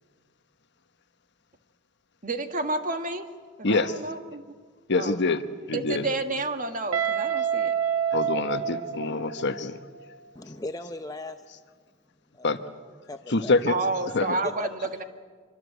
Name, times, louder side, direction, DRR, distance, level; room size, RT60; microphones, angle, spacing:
voice 1, 2.2-3.3 3.6-4.4 4.9-5.2 5.7-7.7 13.7-15.0, right 3 dB, 40° right, 7 dB, 1.7 m, -30 dB
voice 2, 4.9-5.4 5.7-6.1 8.1-9.8 12.4-12.6 13.3-13.7 14.1-14.4, left 3 dB, 55° left, 9 dB, 1.2 m, -25 dB
Guitar, 6.9-9.7, right 8 dB, 85° right, 1.1 m, -27 dB
voice 3, 10.3-11.4 12.3-12.5 13.0-13.5 14.4-14.7, left 2 dB, 15° left, 7 dB, 0.7 m, -37 dB
25.5 x 24.0 x 8.2 m, 1.6 s
head